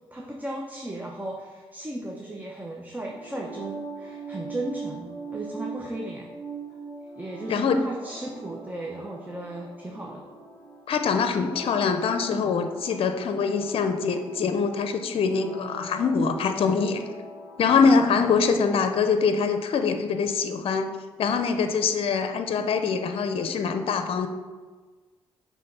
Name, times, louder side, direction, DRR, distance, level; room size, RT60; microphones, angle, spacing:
voice 1, 0.1-6.3 7.2-10.2, right 1 dB, 15° right, -1 dB, 0.8 m, -36 dB
sound 1, 3.0-19.0, right 2 dB, 15° left, 1.6 m, -42 dB
voice 2, 7.5-7.8 10.9-17.0 17.6-20.9 21.2-24.3, left 5 dB, 65° left, 7 dB, 0.6 m, -24 dB
6.3 x 3.5 x 5.6 m, 1.4 s
cardioid pair, 75°, 10 cm